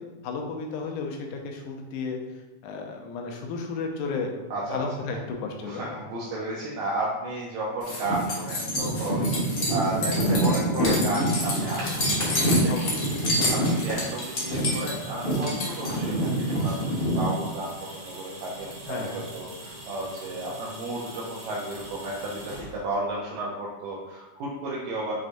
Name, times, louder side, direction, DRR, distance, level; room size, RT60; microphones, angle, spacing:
voice 1, 0.0-6.0 12.7-13.1 18.9-19.3, left 4 dB, 85° left, 2 dB, 2.1 m, -34 dB
voice 2, 4.5-4.8 5.6-13.2 13.5-25.1, right 2 dB, 80° right, -5 dB, 1.9 m, -33 dB
sound 1, 7.8-17.3, equal, 65° left, 1.0 m, -25 dB
sound 2, 11.2-23.1, right 1 dB, 55° right, 1.8 m, -40 dB
6.3 x 3.2 x 2.6 m, 1.1 s
omnidirectional pair, 3.5 m